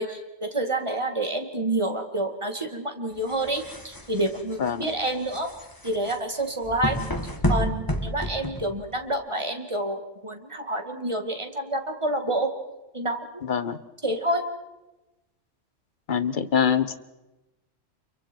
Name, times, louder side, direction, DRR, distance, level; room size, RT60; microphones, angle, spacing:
voice 1, 0.0-5.5 5.8-7.0 7.5-12.5 12.9-13.5 14.0-14.4, right 1 dB, 25° right, 4 dB, 2.2 m, -28 dB
sound 1, 3.2-9.1, equal, 15° left, 1.7 m, -30 dB
voice 2, 13.5-13.8 16.1-17.0, left 7 dB, 45° left, 13 dB, 1.1 m, -24 dB
29.5 x 23.5 x 4.6 m, 1.0 s
omnidirectional pair, 1.3 m